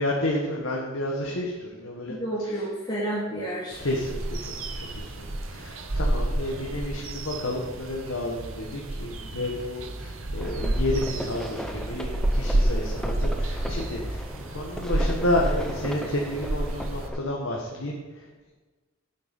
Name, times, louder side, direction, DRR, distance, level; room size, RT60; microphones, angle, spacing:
voice 1, 0.0-2.7 3.8-18.5, left 1 dB, 90° left, -1 dB, 1.5 m, -31 dB
voice 2, 2.1-3.8, right 1 dB, 20° left, -7 dB, 2.4 m, -30 dB
sound 1, 3.7-17.1, right 1 dB, 85° right, 1.1 m, -30 dB
sound 2, 10.4-17.2, equal, 5° left, 0.8 m, -38 dB
10.0 x 8.3 x 5.3 m, 1.3 s
head